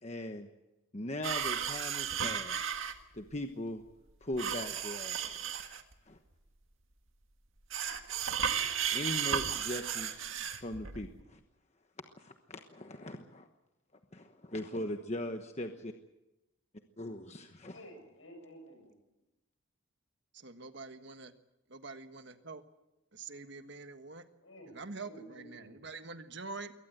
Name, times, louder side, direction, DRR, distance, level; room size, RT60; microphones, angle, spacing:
voice 1, 0.0-0.5 0.9-2.6 3.1-3.8 4.2-5.2 6.1-6.2 8.9-10.2 10.6-11.4 12.2-13.5 14.1-15.9 17.0-17.8, left 1 dB, 35° left, 5 dB, 1.2 m, -40 dB
sound 1, 1.2-2.9 4.3-5.9 7.7-11.2, right 8 dB, 80° right, 1.8 m, -34 dB
voice 2, 17.7-18.9 24.4-25.8, equal, 75° left, 4 dB, 7.7 m, -52 dB
voice 3, 20.3-21.3 21.7-22.6 23.1-24.2 24.7-26.7, right 3 dB, 60° right, 9 dB, 1.5 m, -45 dB
22.5 x 18.5 x 8.0 m, 0.97 s
head